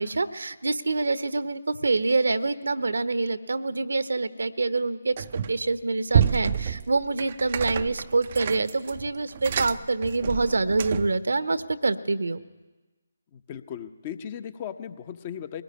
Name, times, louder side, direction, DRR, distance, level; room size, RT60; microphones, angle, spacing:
voice 1, 0.0-5.1 5.5-12.4, right 3 dB, 70° right, 13 dB, 1.1 m, -26 dB
sound 1, 5.2-5.7 6.1-11.2, right 8 dB, 40° right, 0.7 m, -28 dB
voice 2, 13.3-15.6, left 9 dB, 30° left, 11 dB, 1.2 m, -37 dB
22.0 x 19.0 x 9.7 m, 1.2 s
figure-of-eight pair, 145°, 0 cm